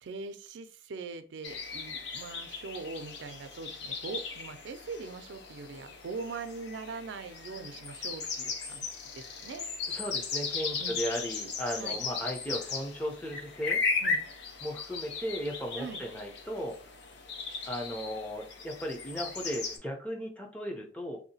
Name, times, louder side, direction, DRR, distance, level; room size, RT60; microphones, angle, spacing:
voice 1, 0.0-9.7 10.8-11.0 11.7-12.0 14.0-14.2 15.8-16.0, right 4 dB, 80° right, 9 dB, 0.4 m, -42 dB
sound 1, 1.4-19.8, left 4 dB, 75° left, 0.6 m, -37 dB
voice 2, 9.9-13.8 14.6-16.7 17.7-21.2, equal, 10° left, 2 dB, 0.6 m, -36 dB
3.6 x 2.7 x 2.7 m, 0.40 s
head